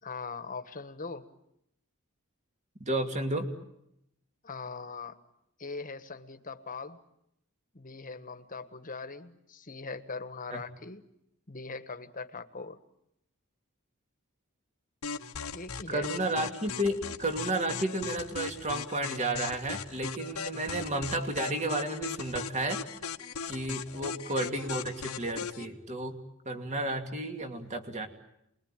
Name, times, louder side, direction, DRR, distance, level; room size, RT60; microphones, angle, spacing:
voice 1, 0.0-1.3 4.4-5.2 5.6-7.0 7.7-11.1 11.5-12.8 15.5-16.1 20.5-20.8 23.9-24.3, left 4 dB, 40° left, 9 dB, 1.5 m, -41 dB
voice 2, 2.8-3.5 10.5-10.6 15.9-22.8 23.5-26.2 26.5-28.1, right 1 dB, 30° right, 5 dB, 2.5 m, -32 dB
sound 1, 15.0-25.7, left 6 dB, 85° left, 1.2 m, -38 dB
28.5 x 22.0 x 9.0 m, 0.79 s
head